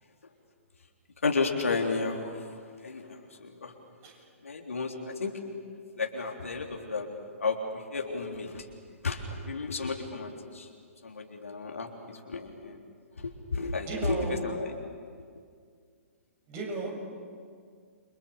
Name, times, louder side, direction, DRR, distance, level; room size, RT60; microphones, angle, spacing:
voice 1, 1.2-3.7 4.4-5.3 6.0-8.7 9.0-10.7 11.0-12.8 13.5-14.7, left 4 dB, 70° left, 2 dB, 3.5 m, -33 dB
voice 2, 13.9-14.4 16.5-16.9, right 3 dB, 30° right, 0 dB, 7.3 m, -34 dB
29.5 x 26.0 x 7.1 m, 2.1 s
figure-of-eight pair, 120°, 8 cm